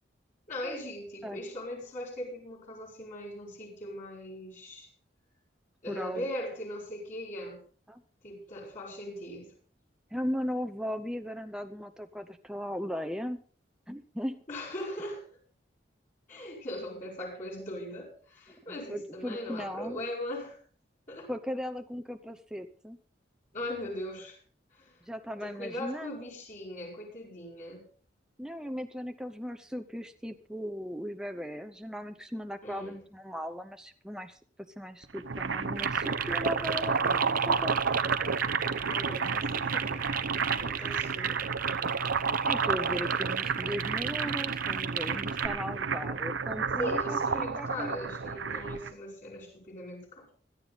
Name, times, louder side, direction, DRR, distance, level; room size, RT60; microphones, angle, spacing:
voice 1, 0.5-4.9 5.8-7.6 8.2-9.5 14.5-15.2 16.3-20.6 21.1-21.3 23.5-24.4 24.7-24.9 25.4-27.8 32.6-33.0 38.9-40.1 40.5-41.5 46.8-50.3, left 1 dB, 40° left, -10 dB, 6.8 m, -39 dB
voice 2, 5.9-6.3 7.9-8.0 10.1-13.4 13.9-14.4 18.7-20.0 21.3-23.0 25.1-26.1 28.4-34.4 34.8-37.8 42.5-47.9, equal, 5° right, 7 dB, 0.7 m, -37 dB
sound 1, 35.0-48.9, right 5 dB, 90° right, 0.8 m, -31 dB
sound 2, 35.8-45.5, right 10 dB, 50° right, 0.8 m, -36 dB
17.0 x 13.0 x 4.1 m, 0.42 s
head